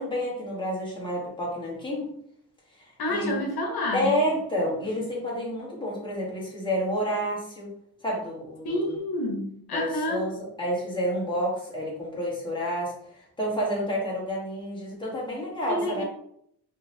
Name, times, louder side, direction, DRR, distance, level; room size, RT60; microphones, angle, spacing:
voice 1, 0.0-2.1 3.1-3.3 3.9-7.7 8.0-8.8 9.7-10.3 10.6-12.9 13.4-16.0, equal, 15° left, -5 dB, 1.1 m, -29 dB
voice 2, 3.0-4.2 8.6-10.3 15.7-16.0, left 1 dB, 85° left, 2 dB, 0.8 m, -29 dB
3.8 x 2.8 x 2.6 m, 0.71 s
wide cardioid pair, 165°, 37 cm